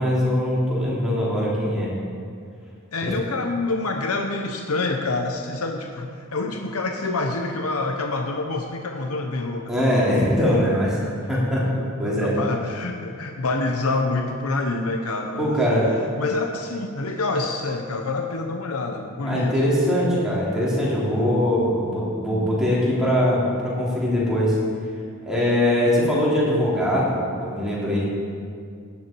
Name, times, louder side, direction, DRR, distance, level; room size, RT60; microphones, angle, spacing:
voice 1, 0.0-1.9 9.7-11.7 12.0-12.4 15.4-15.9 19.2-24.6 25.3-28.0, equal, 5° right, -8 dB, 3.5 m, -22 dB
voice 2, 2.9-10.0 11.7-11.8 12.0-15.9 16.2-19.6, left 3 dB, 75° left, 4 dB, 0.9 m, -27 dB
15.0 x 10.5 x 4.6 m, 2.3 s
head